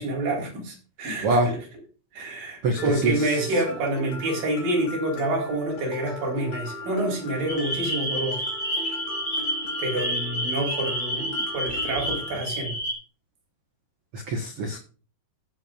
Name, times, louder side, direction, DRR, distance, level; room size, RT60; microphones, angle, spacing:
voice 1, 0.0-1.6 2.1-8.4 9.8-12.8, right 2 dB, 60° right, -1 dB, 5.5 m, -28 dB
voice 2, 2.6-3.1 14.1-14.8, right 2 dB, 85° right, 4 dB, 1.3 m, -24 dB
Mallet percussion, 2.8-12.4, left 2 dB, 85° left, 4.8 m, -39 dB
sound 1, 7.5-12.9, equal, 15° left, 5.1 m, -29 dB
15.0 x 8.2 x 2.4 m, 0.37 s
omnidirectional pair, 4.7 m